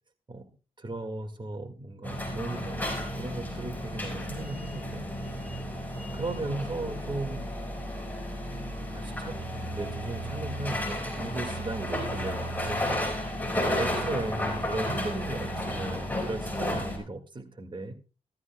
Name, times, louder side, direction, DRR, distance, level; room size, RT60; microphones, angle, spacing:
voice 1, 0.8-5.0 6.1-7.5 8.5-8.6 8.9-9.4 9.7-17.9, right 2 dB, 35° right, 5 dB, 2.0 m, -36 dB
sound 1, 2.0-17.0, equal, 15° left, 5.1 m, -33 dB
15.0 x 13.0 x 2.3 m, 0.33 s
cardioid pair, 55°, 13 cm